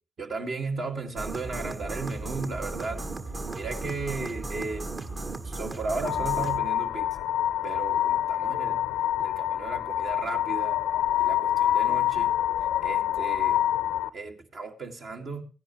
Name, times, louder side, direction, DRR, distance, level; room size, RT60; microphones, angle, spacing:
voice 1, 0.2-3.1 3.6-4.9 5.4-7.3 7.6-8.8 9.2-10.8 11.2-12.3 12.8-13.6 14.1-15.4, right 3 dB, 60° right, 2 dB, 2.1 m, -35 dB
sound 1, 1.2-6.6, right 3 dB, 45° right, 1.5 m, -35 dB
sound 2, 6.0-14.1, left 12 dB, 85° left, 0.5 m, -26 dB
16.5 x 10.5 x 3.1 m, 0.34 s
supercardioid pair, 50°, 0 cm